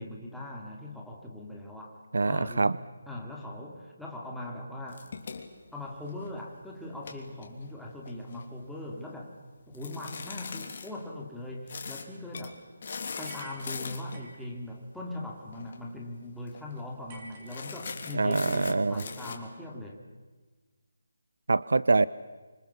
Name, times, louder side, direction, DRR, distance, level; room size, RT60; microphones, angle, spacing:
voice 1, 0.0-2.0 2.3-2.8 3.1-5.1 5.7-9.3 9.7-12.6 13.2-20.0, left 1 dB, ahead, -4 dB, 2.7 m, -40 dB
voice 2, 2.1-2.8 18.1-19.0 21.5-22.1, right 3 dB, 75° right, 18 dB, 0.7 m, -24 dB
sound 1, 4.9-6.4 6.9-8.5 9.7-10.9 11.7-12.1 12.3-12.5 12.8-14.2 15.5-15.8 16.1-16.2 16.5-16.8 17.5-19.4, left 5 dB, 45° left, 3.3 m, -40 dB
sound 2, 13.2-14.5 17.1-18.2, right 1 dB, 30° right, 7.0 m, -50 dB
26.5 x 26.0 x 7.2 m, 1.3 s
figure-of-eight pair, 165°, 0 cm